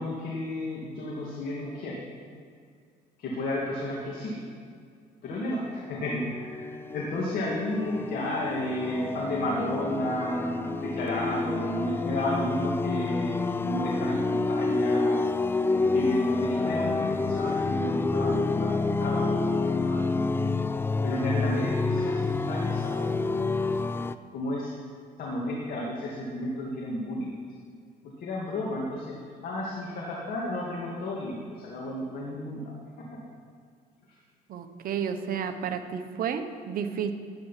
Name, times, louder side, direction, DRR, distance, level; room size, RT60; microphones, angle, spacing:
voice 1, 0.0-2.0 3.2-4.4 5.2-15.1 15.7-18.7 19.0-20.3 21.0-23.5 24.3-24.7 25.2-27.3 28.2-29.2 29.4-32.7, left 1 dB, 60° left, -3 dB, 2.3 m, -32 dB
sound 1, 6.0-24.1, left 3 dB, 15° left, 0.4 m, -28 dB
voice 2, 34.5-37.1, right 7 dB, 60° right, 8 dB, 1.0 m, -31 dB
11.5 x 9.2 x 5.8 m, 2.2 s
cardioid pair, 110°, 17 cm